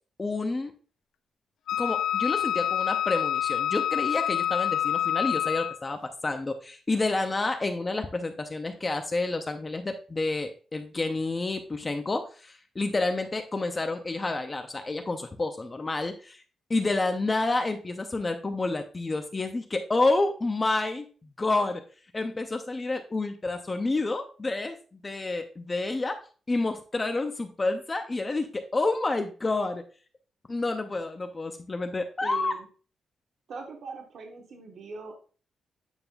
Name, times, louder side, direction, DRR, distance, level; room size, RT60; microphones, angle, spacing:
voice 1, 0.2-0.7 1.8-16.4 16.7-21.0 21.4-21.8 22.1-26.2 26.5-29.8 30.5-32.5, left 2 dB, 20° left, 6 dB, 0.5 m, -29 dB
Wind instrument woodwind instrument, 1.7-5.9, left 11 dB, 85° left, 0.3 m, -27 dB
voice 2, 32.2-32.7 33.5-35.1, right 4 dB, 60° right, 2 dB, 1.2 m, -41 dB
8.8 x 5.5 x 2.3 m, 0.38 s
wide cardioid pair, 160°, 0 cm